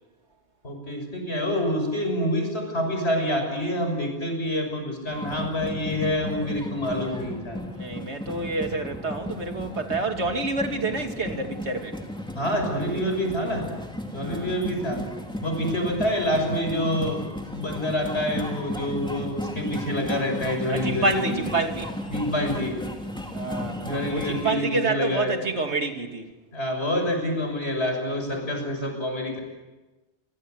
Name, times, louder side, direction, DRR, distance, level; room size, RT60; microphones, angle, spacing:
voice 1, 0.6-7.6 12.4-13.7 14.1-15.0 15.4-17.2 17.5-21.4 22.1-22.8 23.8-25.3 26.5-29.4, left 1 dB, 70° left, 4 dB, 6.8 m, -27 dB
sound 1, 5.1-24.5, left 1 dB, 5° left, 3.4 m, -35 dB
voice 2, 7.7-11.9 14.2-14.5 20.7-21.9 23.3-26.3, right 3 dB, 90° right, 5 dB, 2.9 m, -28 dB
29.5 x 24.5 x 8.1 m, 1.1 s
omnidirectional pair, 1.1 m